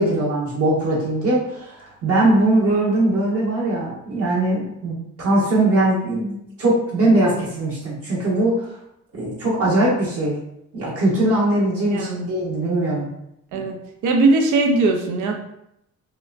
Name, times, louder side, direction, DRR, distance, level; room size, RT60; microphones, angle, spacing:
voice 1, 0.0-8.7 9.1-10.4 10.7-13.1 13.5-13.7, right 1 dB, 50° right, -5 dB, 1.1 m, -20 dB
voice 2, 11.9-12.3 13.5-13.8 14.0-15.4, right 3 dB, 80° right, 3 dB, 0.6 m, -19 dB
2.8 x 2.1 x 2.4 m, 0.79 s
cardioid pair, 90°, 30 cm